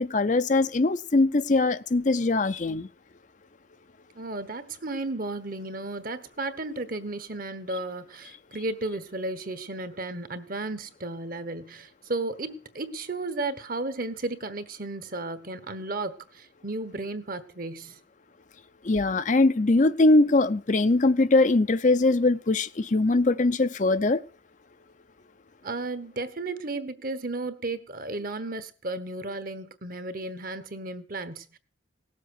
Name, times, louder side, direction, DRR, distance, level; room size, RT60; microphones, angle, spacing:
voice 1, 0.0-2.9 18.8-24.2, left 2 dB, 40° left, 0.6 m, -22 dB
voice 2, 4.1-18.0 25.6-31.6, right 2 dB, 45° right, 1.2 m, -34 dB
18.0 x 7.4 x 6.5 m
head